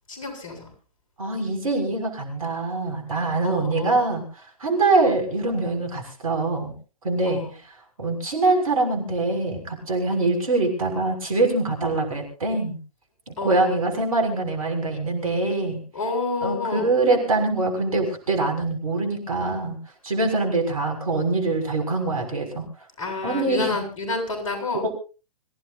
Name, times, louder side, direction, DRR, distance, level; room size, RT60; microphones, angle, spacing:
voice 1, 0.1-0.7 3.4-4.0 7.3-7.5 13.4-13.8 15.9-16.9 23.0-24.8, left 3 dB, 60° left, 4 dB, 7.3 m, -29 dB
voice 2, 1.2-4.2 4.6-6.7 7.0-7.4 8.0-12.8 13.3-15.8 16.4-19.8 20.0-22.6 23.2-23.8 24.8-24.9, right 2 dB, 70° right, 5 dB, 6.4 m, -24 dB
25.5 x 16.0 x 2.7 m, 0.34 s
figure-of-eight pair, 110°, 19 cm